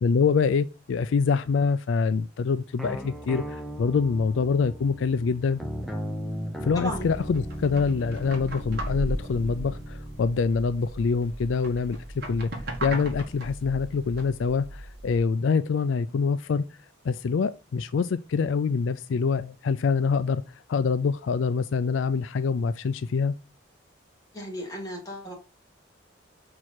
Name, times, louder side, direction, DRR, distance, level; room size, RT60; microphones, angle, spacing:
voice 1, 0.0-5.6 6.6-12.0 12.3-12.5 12.8-16.7 17.0-20.4 20.7-23.4, left 5 dB, 75° left, 0.4 m, -25 dB
sound 1, 2.8-10.2, equal, ahead, 0.7 m, -37 dB
sound 2, 6.9-15.2, right 1 dB, 55° right, 2.0 m, -37 dB
voice 2, 24.3-25.3, right 1 dB, 20° left, 2.4 m, -34 dB
5.9 x 4.7 x 4.3 m
head